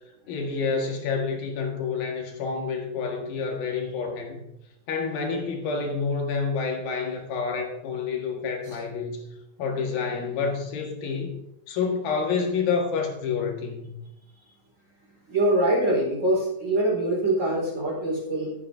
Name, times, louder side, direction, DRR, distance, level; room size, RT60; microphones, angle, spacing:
voice 1, 0.3-4.4 4.9-9.2 9.6-11.4 11.7-13.9, left 5 dB, 75° left, 2 dB, 3.5 m, -28 dB
voice 2, 15.3-18.5, right 1 dB, 20° right, -3 dB, 4.4 m, -24 dB
12.0 x 9.1 x 3.5 m, 0.87 s
omnidirectional pair, 4.2 m